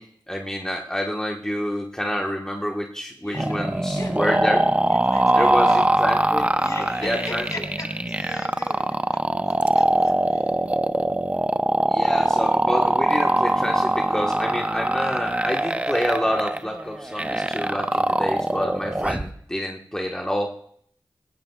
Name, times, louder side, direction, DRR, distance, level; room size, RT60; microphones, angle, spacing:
voice 1, 0.0-4.7 5.3-6.5 7.0-7.4 11.9-20.5, equal, 10° left, 0 dB, 1.4 m, -28 dB
voice 2, 3.2-3.6 3.9-4.2 4.9-5.8 6.6-8.9 9.4-10.6, left 1 dB, 45° left, 1 dB, 5.5 m, -38 dB
sound 1, 3.3-19.3, right 1 dB, 15° right, 0.7 m, -22 dB
19.0 x 17.5 x 2.4 m, 0.66 s
cardioid pair, 50°, 8 cm